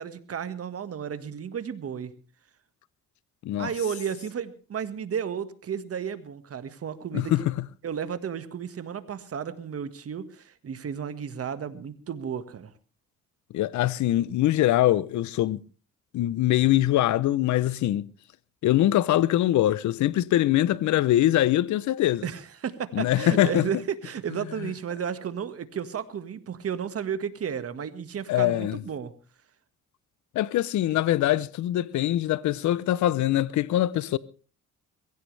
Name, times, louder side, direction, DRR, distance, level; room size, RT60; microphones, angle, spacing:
voice 1, 0.0-2.1 3.6-7.3 7.8-12.7 22.2-29.1, right 7 dB, 50° right, 1.7 m, -33 dB
voice 2, 7.1-7.5 13.5-15.6 16.1-18.1 18.6-22.2 22.9-23.7 24.6-24.7 28.3-28.8 30.3-34.2, left 13 dB, 70° left, 0.7 m, -23 dB
22.0 x 16.0 x 3.3 m
cardioid pair, 90°, 30 cm